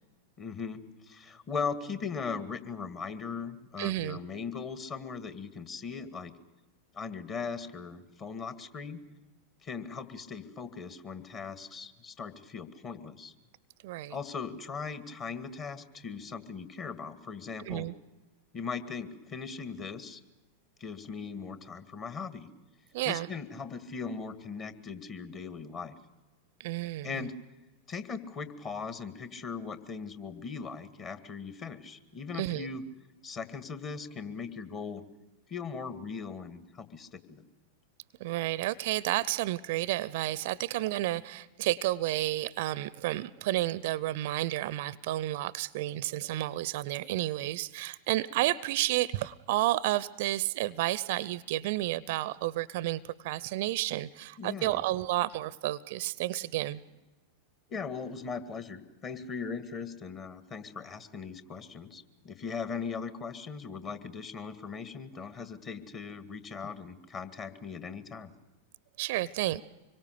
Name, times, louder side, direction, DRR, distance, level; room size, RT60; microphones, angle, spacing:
voice 1, 0.4-6.3 6.9-9.0 9.6-13.3 14.1-17.9 18.5-20.2 20.8-22.5 23.1-25.9 27.0-27.4 27.9-32.8 33.2-35.0 35.5-37.4 54.4-54.8 57.7-68.3, left 5 dB, 30° left, 10 dB, 2.0 m, -39 dB
voice 2, 3.8-4.2 13.8-14.2 17.7-17.9 22.9-23.3 26.6-27.3 32.4-32.7 38.2-56.8 69.0-69.6, right 16 dB, 50° right, 21 dB, 0.7 m, -31 dB
25.5 x 23.0 x 6.8 m, 1.1 s
figure-of-eight pair, 90°, 0 cm